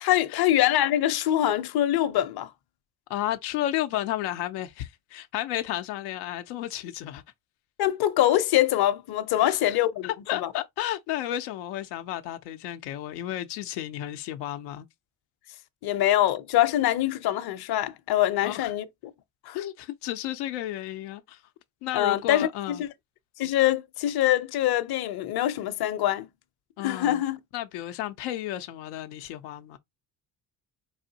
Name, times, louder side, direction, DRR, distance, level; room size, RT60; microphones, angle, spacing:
voice 1, 0.0-2.5 7.8-10.5 15.8-18.8 19.5-19.6 21.9-22.5 22.8-22.9 23.4-26.3 26.8-27.4, left 13 dB, 50° left, 0.7 m, -24 dB
voice 2, 3.1-7.2 9.4-9.8 10.0-14.9 18.4-18.7 19.5-21.4 21.8-22.8 26.8-27.2 27.5-29.8, left 13 dB, 90° left, 0.6 m, -32 dB
4.8 x 2.5 x 2.7 m
supercardioid pair, 70°, 48 cm